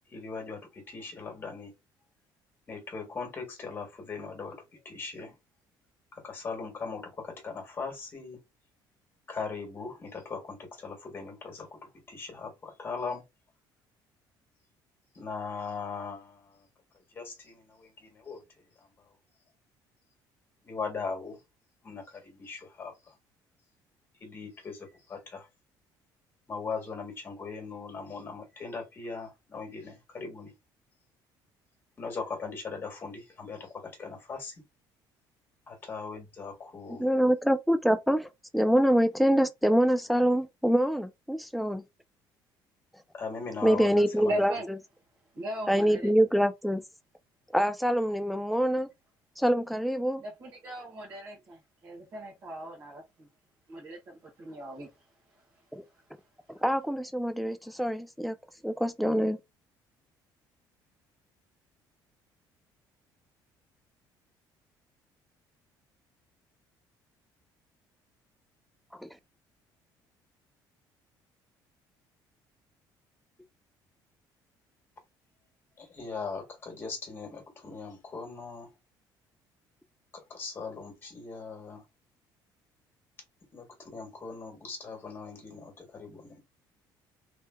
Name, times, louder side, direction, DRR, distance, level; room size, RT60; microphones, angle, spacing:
voice 1, 0.1-1.7 2.7-5.4 6.1-8.4 9.3-13.2 15.1-16.7 17.1-18.4 20.6-21.4 21.8-23.1 24.2-25.5 26.5-30.5 32.0-34.6 35.7-37.1 43.1-44.4 75.8-78.7 80.1-81.8 83.5-86.4, left 4 dB, 25° left, 1.6 m, -39 dB
voice 2, 37.0-41.8 43.6-44.5 45.7-46.8 47.5-48.9 49.4-50.2 55.7-55.8 56.6-58.4 58.6-59.4 69.0-69.1, equal, ahead, 0.4 m, -25 dB
voice 3, 44.3-44.7 45.3-46.1 50.2-53.3 53.7-54.9, right 1 dB, 45° right, 1.6 m, -38 dB
3.4 x 3.1 x 2.2 m
cardioid pair, 160°, 8 cm